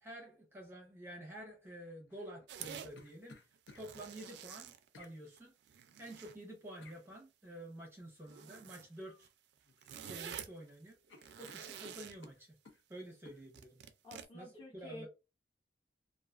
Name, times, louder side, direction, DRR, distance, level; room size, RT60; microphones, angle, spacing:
voice 1, 0.0-3.4 3.7-5.5 6.0-9.3 10.0-11.0 11.4-12.5 12.9-13.8 14.3-15.1, right 1 dB, 15° right, 0.7 m, -50 dB
sound 1, 2.1-3.9 4.9-5.2 6.8-7.0 9.0-9.3 9.6-10.3 10.6-10.7 11.1-12.8 13.2-13.4, left 3 dB, 85° left, 0.5 m, -59 dB
sound 2, 2.5-2.9 3.5-5.4 5.7-6.4 6.9-7.1 8.2-8.9 9.2-9.3 9.6-10.6 11.1-12.3 13.5-14.3, right 8 dB, 75° right, 0.3 m, -48 dB
voice 2, 14.0-15.1, left 1 dB, 30° left, 0.9 m, -50 dB
2.4 x 2.3 x 2.3 m
head